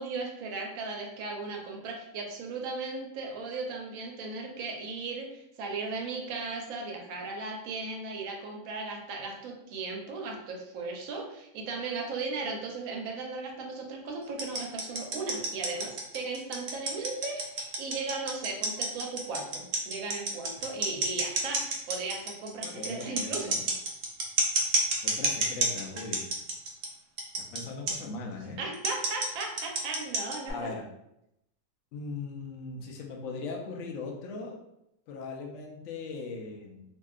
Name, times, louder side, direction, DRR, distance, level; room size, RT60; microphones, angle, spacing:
voice 1, 0.0-23.6 28.6-30.7, right 3 dB, 65° right, 1 dB, 0.9 m, -36 dB
sound 1, 14.4-26.9 27.2-27.6 27.9-28.0 28.7-30.5, right 2 dB, 90° right, 0.6 m, -29 dB
voice 2, 22.6-23.7 25.0-26.3 27.5-28.6 30.5-30.8 31.9-34.6 35.1-36.8, left 4 dB, 80° left, 0 dB, 0.6 m, -39 dB
2.7 x 2.5 x 2.3 m, 0.83 s
omnidirectional pair, 1.8 m